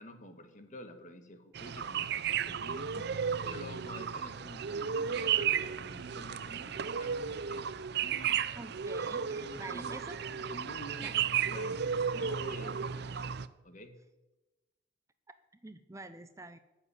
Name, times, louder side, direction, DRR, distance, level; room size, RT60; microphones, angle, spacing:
voice 1, 0.0-3.1 3.4-7.7 8.0-8.5 9.3-9.9 10.3-11.8 12.1-13.4 13.6-14.0, left 1 dB, 45° left, 7 dB, 1.7 m, -49 dB
sound 1, 1.5-13.5, right 7 dB, 60° right, 0.6 m, -34 dB
voice 2, 8.6-10.2 11.0-11.1 15.3-15.4 15.6-16.6, right 2 dB, 15° right, 11 dB, 0.6 m, -47 dB
14.0 x 7.1 x 9.7 m, 1.1 s
head